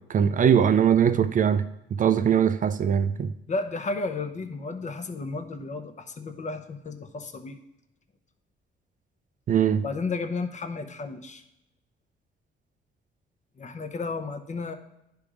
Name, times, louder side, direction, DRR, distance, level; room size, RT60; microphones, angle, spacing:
voice 1, 0.1-3.3 9.5-9.8, right 8 dB, 40° right, 0.4 m, -21 dB
voice 2, 3.5-7.6 9.8-11.4 13.6-14.7, left 3 dB, 35° left, 0.8 m, -33 dB
10.0 x 3.5 x 4.8 m
cardioid pair, 90°, 20 cm